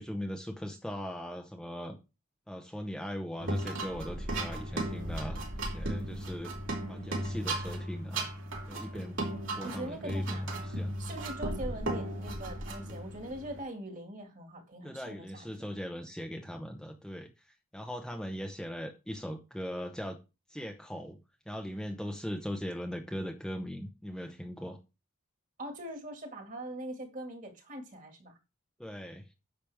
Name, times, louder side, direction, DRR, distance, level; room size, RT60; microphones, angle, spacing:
voice 1, 0.0-2.0 2.5-6.5 6.8-8.3 8.7-9.2 9.5-11.0 14.8-20.2 20.5-21.2 21.5-24.8 28.8-29.3, equal, 5° left, 0.8 m, -39 dB
sound 1, 3.4-13.6, right 1 dB, 65° right, 2.9 m, -36 dB
voice 2, 9.6-10.4 11.0-15.7 25.6-28.4, right 1 dB, 35° right, 2.1 m, -42 dB
10.0 x 6.7 x 3.5 m
head